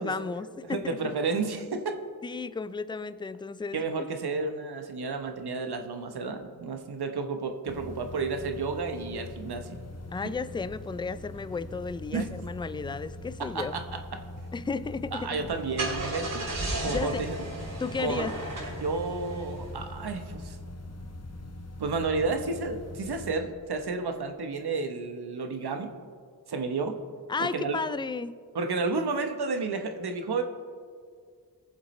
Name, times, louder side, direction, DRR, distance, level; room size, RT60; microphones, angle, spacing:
voice 1, 0.0-1.0 2.2-3.9 10.1-13.8 14.5-15.4 16.8-17.3 17.8-18.3 27.3-28.4, left 4 dB, 15° left, 14 dB, 0.3 m, -33 dB
voice 2, 0.7-1.9 3.7-9.8 12.1-12.3 13.5-13.8 15.1-16.5 16.8-17.4 18.0-18.3 18.8-20.6 21.8-25.9 26.5-27.0 27.4-27.8 28.5-30.4, right 4 dB, 70° right, 6 dB, 1.0 m, -31 dB
sound 1, 7.7-23.4, left 1 dB, 40° left, 1.0 m, -42 dB
Car / Engine starting, 15.4-20.1, right 2 dB, 55° right, 2.9 m, -35 dB
sound 2, 16.8-24.4, left 3 dB, 75° left, 1.6 m, -50 dB
18.0 x 7.2 x 3.2 m, 2.1 s
cardioid pair, 60°, 40 cm